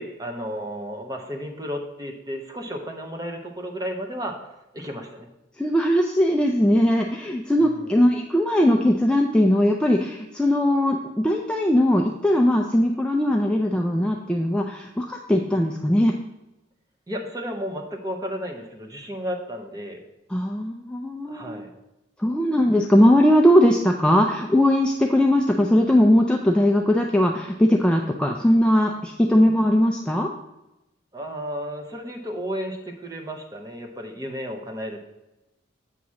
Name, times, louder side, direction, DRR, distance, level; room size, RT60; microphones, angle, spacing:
voice 1, 0.0-4.5 4.7-5.3 7.6-7.9 17.1-20.0 21.2-21.7 31.1-35.0, equal, 20° right, 3 dB, 0.8 m, -33 dB
voice 2, 5.6-16.1 20.3-21.6 22.2-30.3, equal, 5° left, 1 dB, 0.3 m, -20 dB
8.2 x 3.0 x 6.2 m, 0.95 s
head